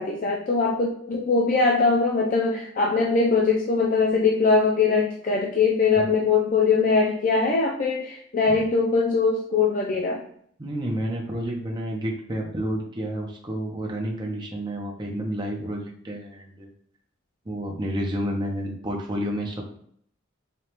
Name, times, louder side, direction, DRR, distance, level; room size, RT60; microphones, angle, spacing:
voice 1, 0.0-10.2, left 4 dB, 40° left, -1 dB, 0.4 m, -22 dB
voice 2, 10.6-16.7 17.5-19.7, equal, 20° right, 0 dB, 0.6 m, -30 dB
5.0 x 2.3 x 2.9 m, 0.64 s
head